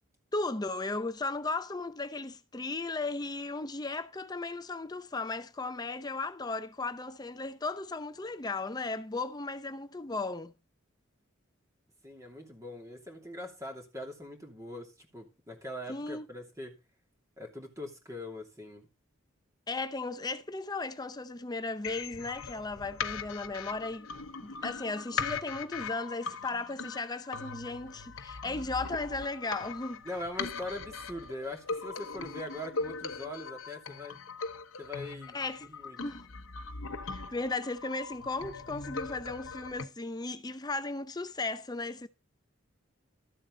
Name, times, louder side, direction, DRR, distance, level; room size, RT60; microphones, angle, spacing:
voice 1, 0.3-10.5 15.9-16.3 19.7-24.1 24.4-30.0 35.3-35.7 36.0-36.3 37.1-42.1, left 3 dB, 20° left, 0.6 m, -36 dB
voice 2, 12.0-16.8 17.4-18.9 30.0-34.2 34.8-36.0, left 1 dB, 15° right, 2.8 m, -42 dB
sound 1, 21.8-39.8, left 5 dB, 85° left, 0.9 m, -40 dB
13.0 x 7.5 x 3.9 m
head